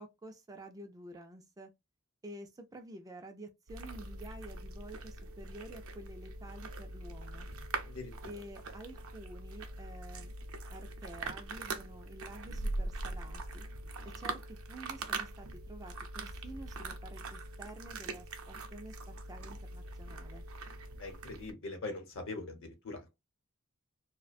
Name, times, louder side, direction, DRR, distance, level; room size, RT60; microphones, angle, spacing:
voice 1, 0.0-1.7 2.2-7.5 8.3-10.3 10.7-13.7 14.0-20.5, right 1 dB, 15° right, 0.3 m, -50 dB
sound 1, 3.7-21.5, right 2 dB, 70° right, 0.5 m, -42 dB
voice 2, 21.0-23.2, left 3 dB, 65° left, 0.8 m, -42 dB
2.4 x 2.1 x 2.5 m
head